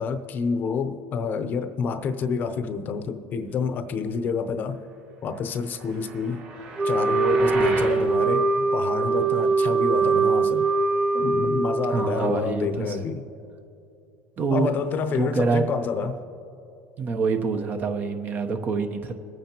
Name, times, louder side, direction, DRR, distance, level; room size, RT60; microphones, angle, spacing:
voice 1, 0.0-4.8 5.2-6.4 6.8-10.7 11.1-13.2 14.5-16.2, left 5 dB, 45° left, 0.7 m, -28 dB
sound 1, 5.8-8.0, right 3 dB, 65° right, 3.2 m, -33 dB
Wind instrument woodwind instrument, 6.8-12.4, right 4 dB, 20° right, 0.4 m, -22 dB
voice 2, 11.9-13.0 14.4-14.7 15.1-15.6 17.0-19.2, right 4 dB, 40° right, 0.9 m, -26 dB
21.5 x 9.2 x 3.0 m
supercardioid pair, 100°, 5 cm